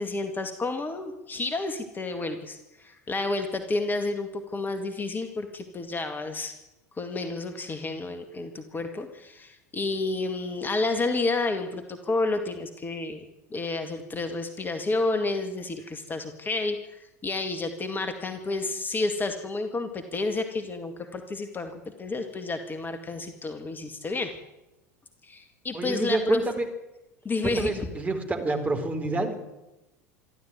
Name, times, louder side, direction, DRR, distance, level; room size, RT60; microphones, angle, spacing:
voice 1, 0.0-6.5 6.9-24.4 25.2-26.4 27.2-27.7, left 3 dB, 20° left, 7 dB, 2.1 m, -30 dB
voice 2, 25.7-26.7 27.4-29.3, right 3 dB, 15° right, 4 dB, 4.3 m, -28 dB
26.0 x 12.5 x 9.3 m, 0.99 s
figure-of-eight pair, 75°, 9 cm